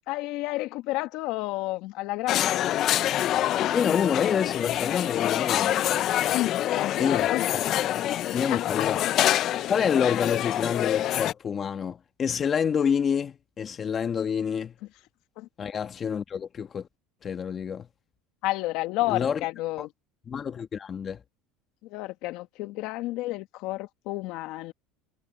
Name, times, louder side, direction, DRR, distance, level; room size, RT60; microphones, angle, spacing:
voice 1, 0.1-2.7 6.3-7.5 8.5-8.9 15.4-15.5 18.4-19.9 21.9-24.7, left 18 dB, 65° left, 1.8 m, -31 dB
sound 1, 2.3-11.3, left 12 dB, 50° left, 0.6 m, -26 dB
voice 2, 3.7-5.7 7.0-7.6 8.0-8.1 8.3-9.0 9.7-14.7 15.6-16.9 17.2-17.9 19.0-19.4 19.8-19.9 20.3-21.2, left 7 dB, 30° left, 1.4 m, -28 dB
supercardioid pair, 110°, 0 cm